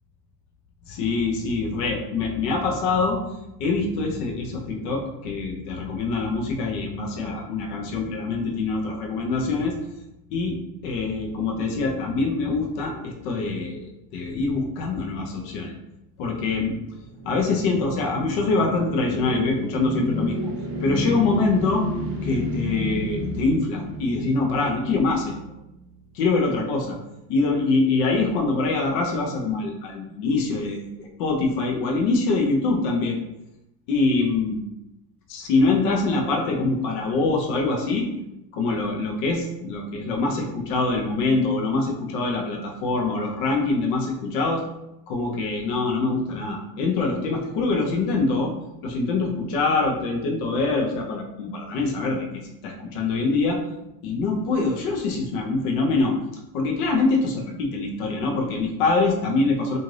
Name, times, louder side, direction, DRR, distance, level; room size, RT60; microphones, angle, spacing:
voice 1, 0.9-3.2 3.6-9.8 10.3-10.6 10.8-13.8 14.1-15.7 16.2-16.8 17.2-20.5 20.8-21.9 22.2-25.3 26.1-27.0 27.3-33.2 33.9-34.6 35.3-38.1 38.5-44.6 45.1-48.5 48.8-53.6 54.0-56.1 56.5-59.8, left 3 dB, 80° left, 1 dB, 0.7 m, -24 dB
sound 1, 16.7-26.0, left 1 dB, 30° right, 0.6 m, -32 dB
2.5 x 2.5 x 3.1 m, 0.89 s
cardioid pair, 140°, 45 cm